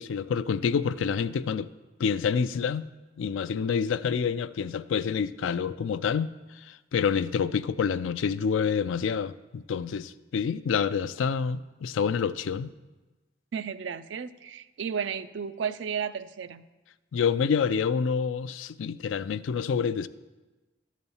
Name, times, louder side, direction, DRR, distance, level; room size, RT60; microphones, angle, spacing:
voice 1, 0.0-1.7 2.0-2.9 3.2-6.3 6.6-12.7 17.1-20.1, left 6 dB, 80° left, 15 dB, 0.4 m, -27 dB
voice 2, 13.5-16.6, right 7 dB, 65° right, 12 dB, 0.4 m, -33 dB
12.0 x 4.1 x 7.1 m, 1.2 s
head